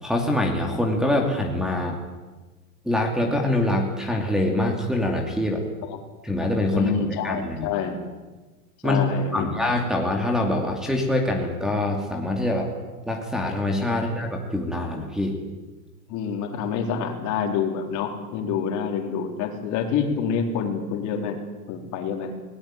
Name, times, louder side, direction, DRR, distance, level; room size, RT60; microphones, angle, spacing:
voice 1, 0.0-2.0 2.8-5.6 6.2-6.9 7.2-7.7 8.8-9.0 9.3-12.7 13.0-15.4, left 1 dB, ahead, -1 dB, 2.6 m, -24 dB
voice 2, 6.7-8.0 8.8-9.5 16.1-21.4 21.7-22.3, left 6 dB, 40° left, 3 dB, 4.1 m, -27 dB
20.5 x 18.5 x 9.1 m, 1.2 s
supercardioid pair, 145°, 46 cm